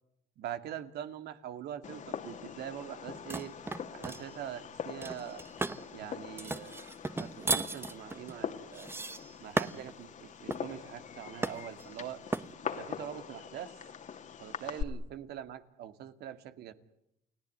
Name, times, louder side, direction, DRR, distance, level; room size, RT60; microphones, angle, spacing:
voice 1, 0.4-3.5 3.9-5.4 5.9-6.9 7.2-8.9 9.4-12.2 12.7-13.7 14.4-16.7, right 10 dB, 75° right, 10 dB, 2.3 m, -43 dB
Fireworks, 1.8-14.8, left 7 dB, 45° left, 2.4 m, -43 dB
sound 1, 3.3-4.3 5.0-5.8 6.4-9.9 10.5-10.7 11.4-11.9 12.3-12.5, right 2 dB, 15° right, 1.2 m, -35 dB
30.0 x 17.5 x 9.6 m, 0.83 s
cardioid pair, 110°, 17 cm